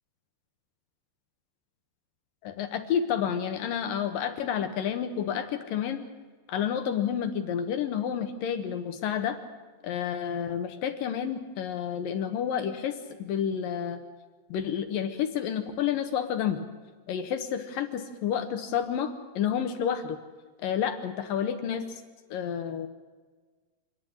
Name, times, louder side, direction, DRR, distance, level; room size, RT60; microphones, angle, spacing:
voice 1, 2.4-6.1 6.5-9.4 9.8-14.0 14.5-16.7 17.1-20.2 20.6-22.0 22.3-22.9, left 8 dB, 70° left, 8 dB, 2.6 m, -30 dB
26.0 x 10.5 x 9.8 m, 1.4 s
omnidirectional pair, 4.6 m